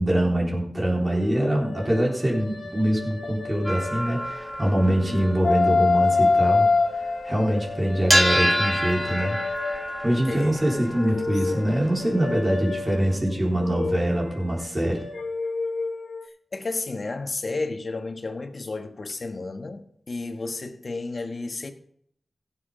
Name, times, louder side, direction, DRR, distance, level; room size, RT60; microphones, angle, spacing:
voice 1, 0.0-6.7 7.2-9.4 10.0-15.0, right 1 dB, 30° right, 3.7 m, -24 dB
sound 1, 1.0-4.6 5.0-10.2 10.7-16.2, left 3 dB, 90° left, 1.1 m, -27 dB
sound 2, 3.6-7.1 7.4-7.6 8.0-13.1, equal, 5° right, 1.3 m, -28 dB
voice 2, 10.2-11.7 16.5-21.7, left 3 dB, 60° left, 1.3 m, -33 dB
16.5 x 7.3 x 3.9 m
wide cardioid pair, 60°, 0 cm